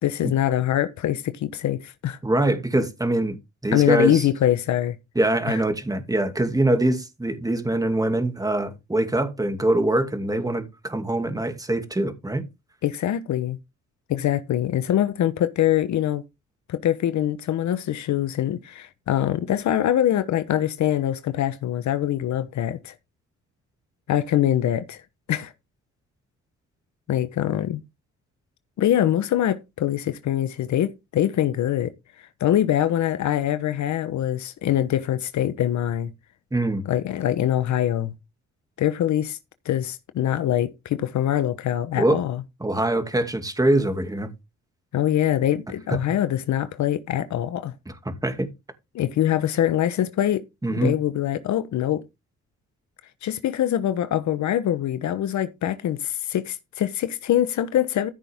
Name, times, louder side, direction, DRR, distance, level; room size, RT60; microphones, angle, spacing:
voice 1, 0.0-2.2 3.7-5.0 5.5-5.6 12.8-13.6 14.1-16.2 16.7-22.9 24.1-25.0 25.3-25.5 27.1-27.8 28.8-31.9 32.4-36.1 36.9-38.1 38.8-39.4 39.6-42.4 44.9-47.7 48.9-50.4 50.7-52.0 53.2-58.1, left 11 dB, 70° left, 1.1 m, -23 dB
voice 2, 2.2-3.4 3.6-4.3 5.2-12.4 36.5-36.9 41.9-42.2 42.6-44.3 48.1-48.5 50.6-50.9, right 1 dB, 10° right, 2.4 m, -23 dB
14.0 x 6.1 x 3.6 m
cardioid pair, 90°, 30 cm